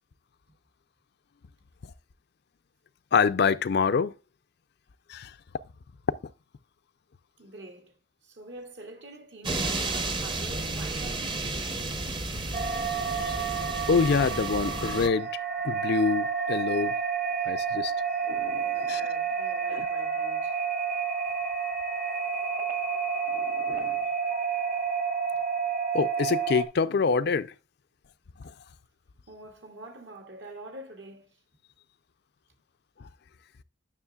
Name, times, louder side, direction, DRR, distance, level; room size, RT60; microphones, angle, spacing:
voice 1, 3.1-4.1 5.1-5.3 13.2-13.3 13.9-15.3 15.6-16.9 17.5-17.9 18.3-19.0 19.7-19.9 23.3-24.0 25.9-27.5, left 5 dB, 60° left, 0.4 m, -26 dB
voice 2, 7.4-11.4 18.5-20.6 23.3-24.2 28.4-28.5 29.3-31.4, right 2 dB, 70° right, 2.1 m, -46 dB
sound 1, 9.4-15.1, right 2 dB, 25° right, 0.8 m, -32 dB
sound 2, 12.5-26.6, right 6 dB, 45° right, 1.4 m, -30 dB
9.8 x 6.2 x 2.3 m
head